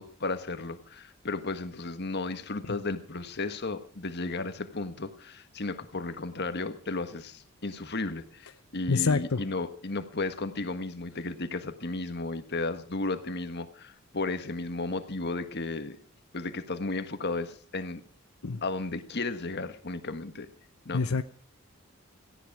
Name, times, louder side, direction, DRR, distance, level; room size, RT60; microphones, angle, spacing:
voice 1, 0.0-16.0 16.3-18.0 18.6-20.5 20.8-21.1, left 3 dB, 50° left, 9 dB, 1.5 m, -34 dB
voice 2, 8.9-9.4 18.4-18.6 20.9-21.2, left 4 dB, 85° left, 10 dB, 0.8 m, -26 dB
18.0 x 15.0 x 4.8 m, 0.42 s
head